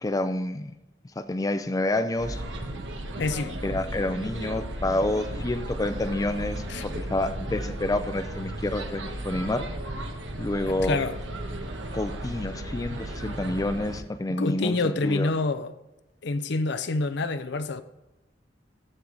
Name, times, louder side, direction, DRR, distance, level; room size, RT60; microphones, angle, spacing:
voice 1, 0.0-0.7 1.2-2.4 3.6-9.6 10.4-11.0 11.9-15.3, left 1 dB, 20° left, 0.4 m, -28 dB
sound 1, 2.2-14.0, right 1 dB, 75° right, 1.2 m, -35 dB
voice 2, 3.2-3.6 6.7-6.8 10.7-11.2 14.3-15.7 16.2-17.8, left 3 dB, 65° left, 0.6 m, -27 dB
14.0 x 4.8 x 3.8 m
head